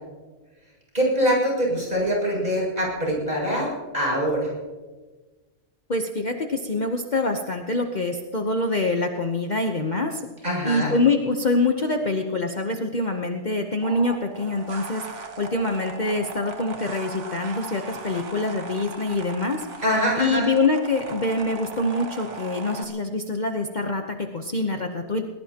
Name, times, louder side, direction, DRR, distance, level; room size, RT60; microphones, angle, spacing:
voice 1, 0.9-4.5 10.4-10.9 19.8-20.5, equal, 35° right, -4 dB, 7.4 m, -24 dB
voice 2, 5.9-10.2 10.6-19.7 20.2-25.2, left 2 dB, 40° left, 4 dB, 1.0 m, -25 dB
sound 1, 13.8-22.8, right 3 dB, 70° right, 1.6 m, -38 dB
22.0 x 20.0 x 2.9 m, 1.3 s
omnidirectional pair, 1.3 m